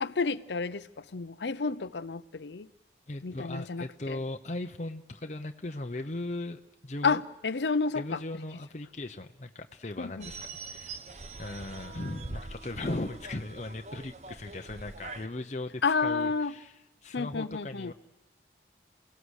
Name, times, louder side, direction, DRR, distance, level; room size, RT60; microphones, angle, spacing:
voice 1, 0.0-2.7 3.2-4.2 7.0-8.2 10.0-10.3 15.8-16.6 17.1-17.9, left 4 dB, 85° left, 0.7 m, -30 dB
voice 2, 3.1-7.2 8.0-10.4 10.7-11.0 11.4-16.7 17.0-17.9, left 2 dB, 40° left, 0.8 m, -38 dB
sound 1, 10.2-15.3, right 3 dB, 40° right, 0.9 m, -43 dB
28.5 x 17.5 x 6.5 m
head